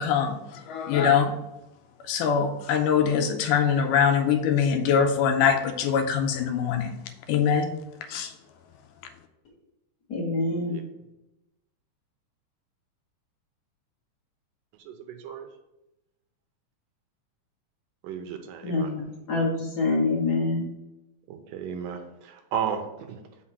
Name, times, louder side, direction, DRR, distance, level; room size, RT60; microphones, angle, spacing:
voice 1, 0.0-1.4 2.0-6.9 7.3-7.8 8.1-8.3, left 7 dB, 80° left, 2.2 m, -23 dB
voice 2, 10.1-10.8 18.6-20.7, left 3 dB, 45° left, 1.4 m, -26 dB
voice 3, 18.0-18.9 21.3-22.0 22.5-22.8 23.1-23.2, right 8 dB, 80° right, 2.3 m, -32 dB
5.9 x 4.1 x 6.0 m
omnidirectional pair, 3.9 m